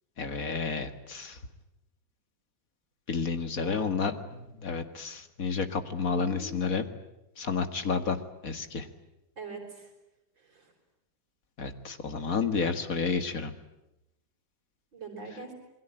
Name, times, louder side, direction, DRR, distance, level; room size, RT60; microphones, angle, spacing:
voice 1, 0.2-1.4 3.1-6.8 7.4-8.2 8.4-8.9 11.6-13.5, left 5 dB, 50° left, 9 dB, 2.2 m, -31 dB
voice 2, 3.6-4.1 6.0-6.7 9.4-9.9 10.4-10.7 14.9-15.5, right 4 dB, 75° right, 4 dB, 5.9 m, -43 dB
28.0 x 22.0 x 9.0 m, 0.92 s
omnidirectional pair, 2.0 m